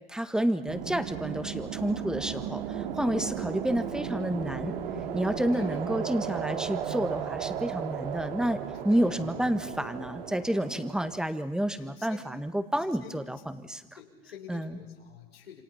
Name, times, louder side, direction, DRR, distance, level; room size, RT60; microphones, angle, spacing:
voice 1, 0.1-4.7 5.1-8.6 8.8-13.4 13.6-13.8 14.5-14.8, right 1 dB, ahead, 10 dB, 1.6 m, -29 dB
sound 1, 0.7-11.2, right 8 dB, 70° right, 2.7 m, -35 dB
voice 2, 5.5-6.2 8.9-9.6 11.8-12.3 13.0-13.2 13.9-15.6, left 8 dB, 90° left, 0 dB, 6.1 m, -49 dB
28.0 x 26.0 x 5.8 m, 1.2 s
hypercardioid pair, 110°, 29 cm